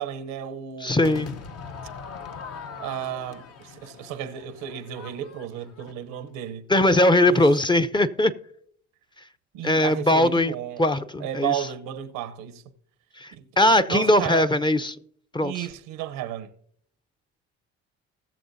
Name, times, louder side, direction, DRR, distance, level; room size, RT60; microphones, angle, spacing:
voice 1, 0.0-1.4 2.8-6.7 7.3-7.5 9.5-10.8 11.2-12.6 13.3-14.5 15.4-16.5, right 11 dB, 85° right, 0.9 m, -33 dB
voice 2, 0.8-1.3 6.7-8.3 9.6-11.5 13.2-13.3 13.6-15.0 15.3-15.7, left 1 dB, 15° left, 0.6 m, -20 dB
Crowd / Fireworks, 1.0-6.3, left 5 dB, 50° left, 0.9 m, -41 dB
19.5 x 6.7 x 2.7 m
supercardioid pair, 65°, 32 cm